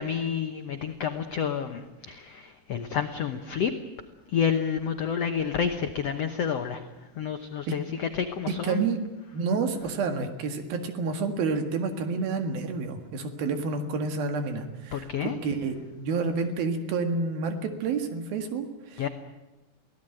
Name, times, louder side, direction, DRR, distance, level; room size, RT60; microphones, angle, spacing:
voice 1, 0.0-3.7 4.3-6.8 7.1-8.8 14.9-15.4 19.0-19.1, left 7 dB, 75° left, 6 dB, 1.4 m, -29 dB
voice 2, 8.6-9.0 9.3-19.1, right 4 dB, 70° right, 7 dB, 3.6 m, -29 dB
24.0 x 17.0 x 9.0 m, 1.1 s
omnidirectional pair, 4.5 m